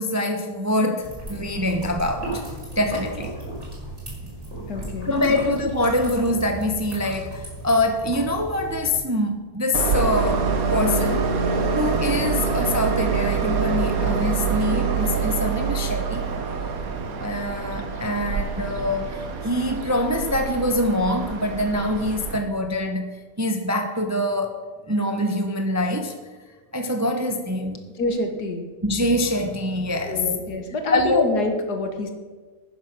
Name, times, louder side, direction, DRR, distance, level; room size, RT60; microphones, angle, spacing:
voice 1, 0.0-2.4 2.8-3.4 5.0-11.3 11.7-16.3 17.2-26.1 26.7-27.8 28.8-30.4 30.9-31.3, left 1 dB, 15° right, 5 dB, 0.6 m, -24 dB
sound 1, 1.0-9.0, right 1 dB, 45° right, 4.8 m, -35 dB
voice 2, 4.7-5.4 28.0-28.7 30.0-32.1, left 2 dB, 80° left, 5 dB, 2.0 m, -27 dB
Train, 9.7-22.4, right 5 dB, 65° right, 1.4 m, -25 dB
11.0 x 9.4 x 6.0 m, 1.4 s
omnidirectional pair, 1.7 m